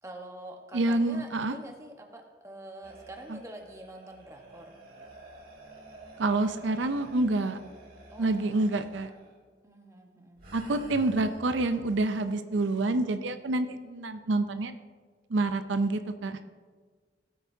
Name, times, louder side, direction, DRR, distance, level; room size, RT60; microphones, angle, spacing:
voice 1, 0.0-4.8 8.1-8.7 9.6-10.5, right 1 dB, 15° right, 2 dB, 1.2 m, -46 dB
voice 2, 0.7-1.6 3.3-3.4 6.2-7.6 8.2-9.1 10.5-14.8 15.3-16.4, right 2 dB, 90° right, 9 dB, 0.6 m, -27 dB
sound 1, 2.8-9.3 10.4-12.0, right 1 dB, 50° right, 2.4 m, -50 dB
18.0 x 8.5 x 2.8 m, 1.5 s
head